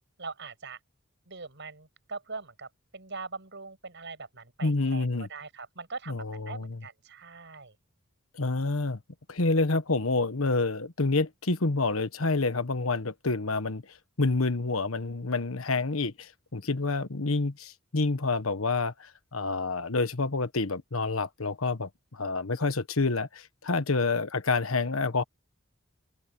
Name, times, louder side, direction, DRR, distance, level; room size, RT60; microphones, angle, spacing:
voice 1, 0.2-0.8 1.3-7.8 16.8-16.9, right 4 dB, 60° right, 7.6 m, -42 dB
voice 2, 4.6-5.3 6.1-6.8 8.3-9.0 9.3-25.2, left 3 dB, 85° left, 1.3 m, -28 dB
open air
head